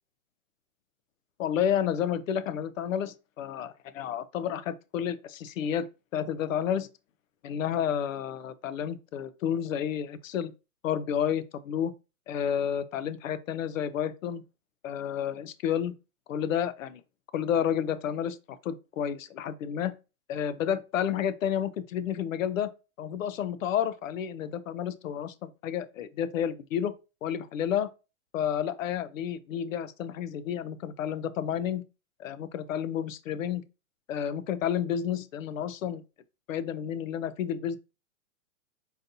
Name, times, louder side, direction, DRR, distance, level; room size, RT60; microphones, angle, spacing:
voice 1, 1.4-6.9 7.4-10.5 10.8-11.9 12.3-14.4 14.8-15.9 16.3-17.0 17.3-20.0 20.3-22.7 23.0-26.9 27.2-27.9 28.3-31.8 32.2-33.6 34.1-36.0 36.5-37.8, left 9 dB, 70° left, 0.5 m, -30 dB
3.9 x 2.7 x 2.6 m
hypercardioid pair, 180°, 41 cm